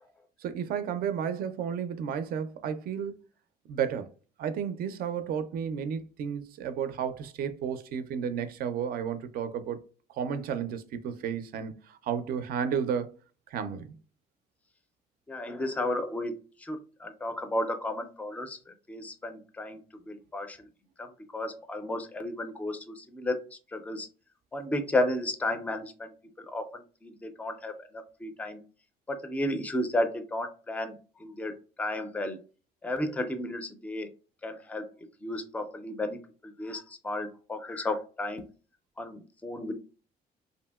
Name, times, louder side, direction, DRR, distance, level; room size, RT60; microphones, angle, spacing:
voice 1, 0.4-3.1 3.7-4.1 4.4-9.8 10.1-13.1 13.5-14.0, right 7 dB, 60° right, 0.4 m, -32 dB
voice 2, 15.3-19.8 20.1-20.6 21.0-23.4 23.7-24.1 24.5-28.6 29.1-32.4 32.8-34.1 34.4-34.9 35.2-36.2 36.6-38.4 39.0-39.7, left 1 dB, 10° left, 0.4 m, -33 dB
2.8 x 2.6 x 2.2 m
cardioid pair, 110°, 17 cm